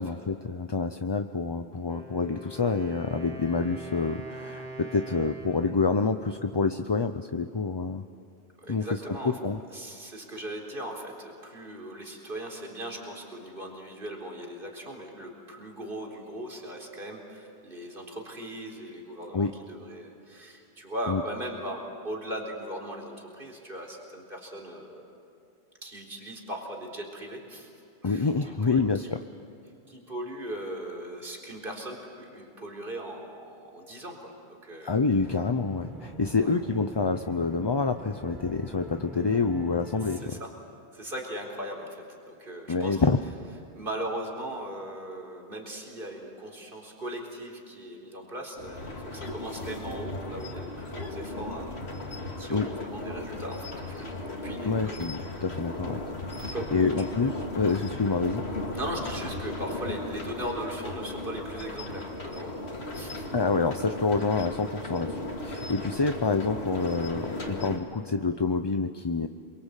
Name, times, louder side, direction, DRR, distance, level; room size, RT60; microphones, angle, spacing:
voice 1, 0.0-8.0 8.7-9.6 19.3-19.5 21.1-21.2 28.0-29.2 34.8-40.4 42.7-43.2 52.5-52.7 54.6-56.0 56.4-58.5 63.3-69.3, left 4 dB, 30° left, 7 dB, 0.6 m, -27 dB
Wind instrument woodwind instrument, 1.7-7.5, right 1 dB, 70° right, 2.6 m, -44 dB
voice 2, 8.6-9.4 9.7-25.1 25.8-27.7 28.0-28.3 28.6-29.1 29.9-34.9 36.4-36.5 40.0-40.5 40.9-43.0 43.7-54.1 54.4-55.0 56.5-56.9 58.7-62.6 62.9-63.3, right 1 dB, 55° right, 0 dB, 4.4 m, -38 dB
sound 1, 35.2-40.3, equal, ahead, 4.0 m, -43 dB
sound 2, 48.6-67.8, left 2 dB, 75° left, 2.7 m, -36 dB
27.5 x 24.0 x 8.3 m, 2.6 s
omnidirectional pair, 1.1 m